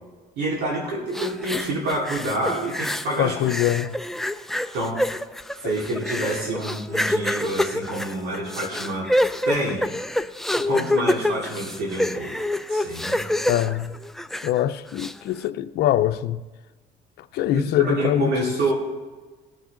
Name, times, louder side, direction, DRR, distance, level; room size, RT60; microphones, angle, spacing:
voice 1, 0.4-3.3 4.7-5.0 5.6-9.1 9.4-9.9 10.5-13.3 17.5-18.7, right 1 dB, 80° right, 4.2 m, -27 dB
sound 1, 1.1-3.2 3.5-14.6 15.0-15.1, left 1 dB, ahead, 0.5 m, -26 dB
voice 2, 3.2-4.0 13.5-13.9 14.4-16.4 17.3-18.3, left 12 dB, 75° left, 0.7 m, -23 dB
19.5 x 9.0 x 3.8 m
cardioid pair, 110°, 17 cm